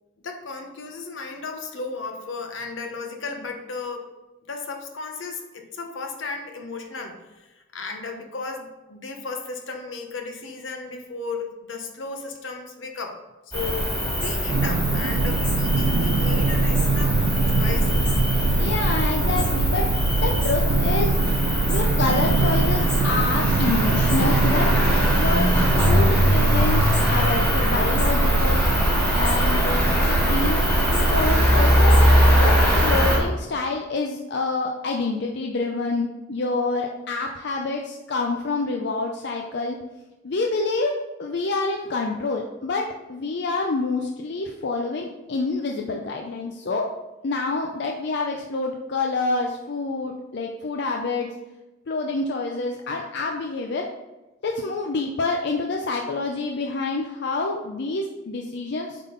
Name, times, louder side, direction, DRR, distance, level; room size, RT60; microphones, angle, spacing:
voice 1, 0.2-4.1 4.5-13.2 13.5-13.9 14.2-17.2 17.5-17.9, left 4 dB, 80° left, 4 dB, 0.9 m, -34 dB
Cricket, 13.5-33.2, equal, 10° left, 2.2 m, -22 dB
sound 1, 14.5-32.9, right 3 dB, 70° right, 0.4 m, -23 dB
voice 2, 18.6-21.1 21.7-24.7 25.2-25.5 25.8-28.6 29.1-30.6 30.9-32.0 32.4-39.8 40.2-40.9 41.2-46.9 47.2-51.3 51.9-53.9 54.4-59.0, left 3 dB, 60° left, 1 dB, 0.5 m, -27 dB
8.1 x 3.7 x 3.8 m, 1.1 s
head